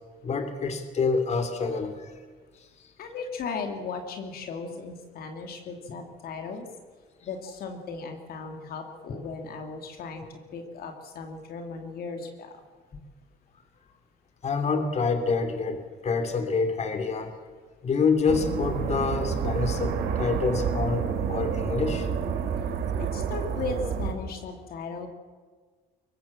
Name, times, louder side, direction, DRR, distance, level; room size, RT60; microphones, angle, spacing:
voice 1, 0.2-2.1 14.4-17.4 17.8-22.1, left 4 dB, 40° left, 8 dB, 2.9 m, -27 dB
voice 2, 3.0-6.7 7.2-10.2 10.5-12.6 23.0-25.1, left 4 dB, 65° left, 4 dB, 2.6 m, -36 dB
sound 1, 18.3-24.1, right 7 dB, 75° right, 3.0 m, -29 dB
23.0 x 18.5 x 7.4 m, 1.5 s
cardioid pair, 110°, 17 cm